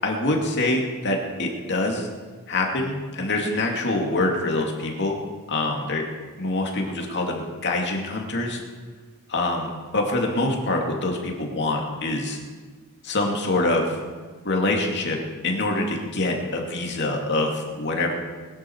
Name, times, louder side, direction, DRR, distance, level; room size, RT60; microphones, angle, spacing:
voice 1, 0.0-2.1 2.5-5.2 5.5-6.0 6.4-8.6 9.3-12.4 13.0-14.0 14.4-15.2 15.4-18.1, left 2 dB, 50° left, 1 dB, 2.6 m, -25 dB
21.0 x 12.0 x 4.7 m, 1.4 s
head